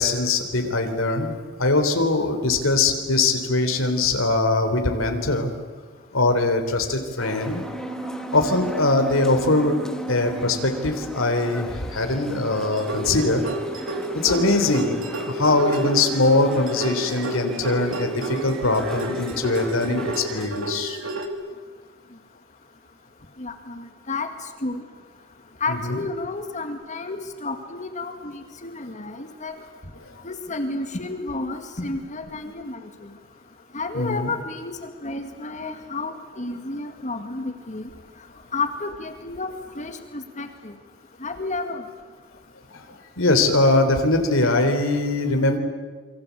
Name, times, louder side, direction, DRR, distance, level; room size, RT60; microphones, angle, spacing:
voice 1, 0.0-5.5 6.1-7.6 8.3-9.8 10.1-13.4 14.1-21.0 25.8-26.0 33.9-34.3 42.7-42.9 43.2-45.6, left 2 dB, 80° left, 5 dB, 3.6 m, -22 dB
sound 1, 7.2-20.5, equal, 5° left, 1.9 m, -37 dB
sound 2, 7.6-13.5, right 3 dB, 35° right, 3.8 m, -37 dB
sound 3, 12.7-21.3, right 1 dB, 85° right, 3.0 m, -31 dB
voice 2, 23.4-24.3 24.6-24.8 25.6-29.5 30.2-32.8 33.7-37.9 38.5-40.7 41.2-41.8, left 3 dB, 35° left, 6 dB, 2.1 m, -31 dB
28.0 x 24.5 x 8.4 m, 1.4 s
head